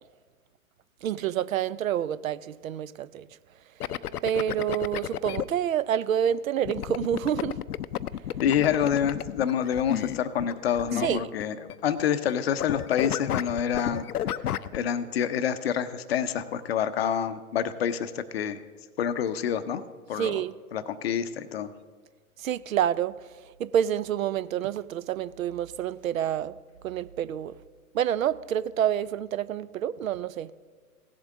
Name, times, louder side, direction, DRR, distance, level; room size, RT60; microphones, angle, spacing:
voice 1, 1.0-3.3 4.2-7.6 11.0-11.3 20.1-20.5 22.4-23.2 23.6-26.6 26.8-27.5 27.9-30.5, right 10 dB, 65° right, 0.5 m, -28 dB
sound 1, 3.8-5.4 6.7-12.3 12.6-14.8, left 11 dB, 85° left, 0.5 m, -32 dB
voice 2, 8.4-14.1 14.7-18.6 19.0-19.8 20.1-20.4 20.7-21.7, left 8 dB, 45° left, 0.6 m, -27 dB
17.0 x 7.4 x 3.6 m
hypercardioid pair, 135°, 44 cm